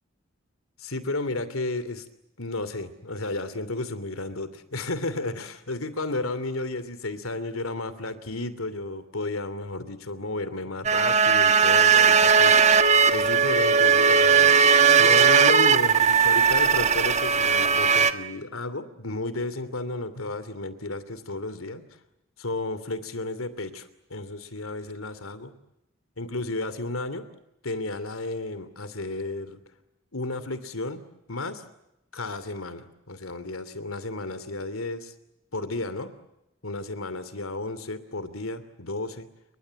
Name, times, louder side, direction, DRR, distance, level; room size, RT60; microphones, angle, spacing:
voice 1, 0.8-2.0 2.4-12.6 13.1-14.5 15.0-21.8 22.4-25.5 26.2-27.3 27.6-29.6 30.1-31.0 31.3-31.6 32.1-35.1 35.5-36.1 36.6-39.3, left 2 dB, 85° left, 14 dB, 2.9 m, -32 dB
sound 1, 10.8-18.1, right 6 dB, 35° right, 1.4 m, -18 dB
29.5 x 23.5 x 7.8 m, 0.87 s
head